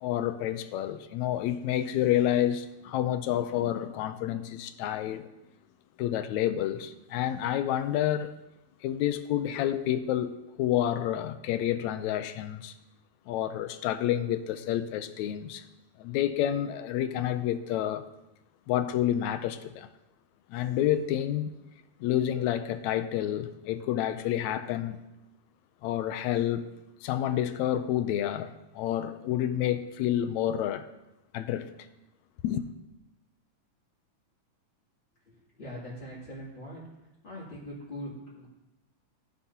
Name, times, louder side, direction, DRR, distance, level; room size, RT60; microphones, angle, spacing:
voice 1, 0.0-5.3 6.0-8.3 8.8-12.7 13.3-15.6 16.0-18.0 18.7-19.9 20.5-21.6 22.0-25.0 25.8-26.7 27.0-30.9 31.3-31.7 32.4-32.6, left 11 dB, 80° left, 1.9 m, -29 dB
voice 2, 35.3-36.8 37.2-38.5, equal, 40° left, 3.3 m, -42 dB
15.0 x 9.0 x 2.8 m
omnidirectional pair, 3.4 m